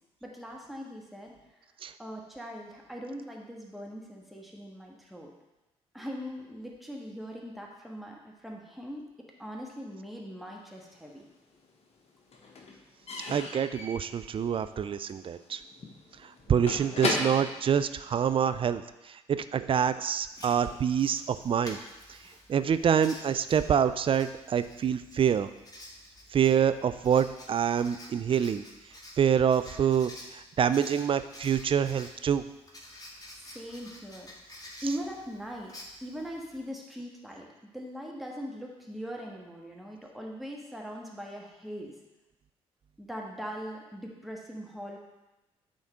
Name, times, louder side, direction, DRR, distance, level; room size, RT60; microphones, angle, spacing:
voice 1, 0.2-1.3 2.0-5.3 5.9-9.0 9.4-11.2 33.3-34.3 34.8-35.7 36.0-41.9 43.0-45.0, equal, ahead, -2 dB, 1.4 m, -40 dB
Slam / Squeak / Wood, 10.8-11.7 11.9-18.7, left 3 dB, 45° left, 1.1 m, -37 dB
voice 2, 13.3-15.6 16.2-21.8 22.5-25.5 26.3-28.7 29.2-32.4, right 8 dB, 40° right, 12 dB, 0.4 m, -26 dB
Writing, 20.3-36.6, left 1 dB, 25° left, 1.6 m, -50 dB
8.6 x 3.8 x 3.7 m, 1.0 s
hypercardioid pair, 45°, 14 cm